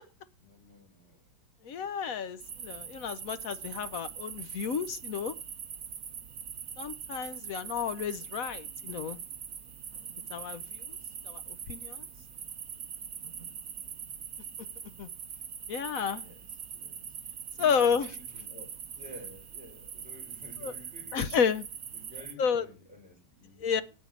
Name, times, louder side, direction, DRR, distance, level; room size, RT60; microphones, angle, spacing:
voice 1, 0.4-1.3 1.8-2.1 13.8-14.1 16.1-17.2 17.6-18.7 19.0-21.4 21.9-23.8, equal, 5° right, 7.0 m, -52 dB
voice 2, 1.6-5.3 6.8-9.2 10.3-10.6 10.9-11.0 11.3-11.4 11.7-12.0 15.0-15.1 15.7-16.2 17.6-18.1 20.6-20.7 21.1-21.6 22.4-22.6 23.6-23.8, left 7 dB, 60° left, 1.0 m, -31 dB
sound 1, 2.4-22.3, right 7 dB, 50° right, 1.3 m, -42 dB
9.2 x 8.5 x 9.5 m
omnidirectional pair, 2.1 m